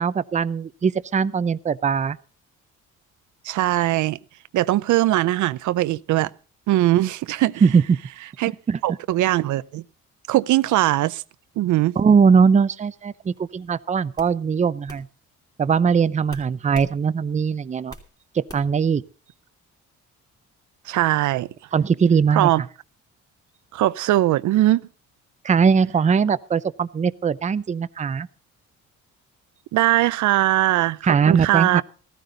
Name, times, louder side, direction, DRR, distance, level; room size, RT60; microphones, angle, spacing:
voice 1, 0.0-2.2 7.6-8.0 8.7-8.8 12.0-15.1 15.6-17.9 18.3-19.0 21.7-22.5 25.4-28.3 31.0-31.8, right 6 dB, 25° right, 0.5 m, -20 dB
voice 2, 3.4-4.2 4.5-6.3 6.7-7.6 8.4-8.5 8.8-9.8 10.3-11.2 11.6-12.0 20.9-21.5 22.3-22.6 23.7-24.8 29.7-31.8, right 15 dB, 75° right, 0.5 m, -20 dB
sound 1, 13.4-13.6 14.2-14.3 14.9-15.0 16.3-16.9 17.3-18.1 18.5-18.8, equal, 10° left, 2.8 m, -42 dB
15.0 x 13.5 x 3.8 m
cardioid pair, 90°, 30 cm